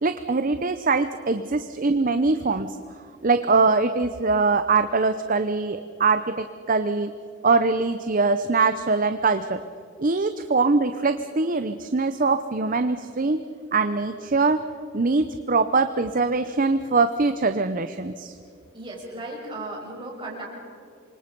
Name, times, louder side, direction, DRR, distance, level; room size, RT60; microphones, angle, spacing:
voice 1, 0.0-2.8 3.2-7.1 7.4-9.6 10.0-13.4 13.7-14.6 14.9-18.4, right 3 dB, 40° right, 9 dB, 0.7 m, -22 dB
voice 2, 18.7-20.5, right 2 dB, 25° right, -2 dB, 6.3 m, -35 dB
28.0 x 24.5 x 5.3 m, 2.5 s
head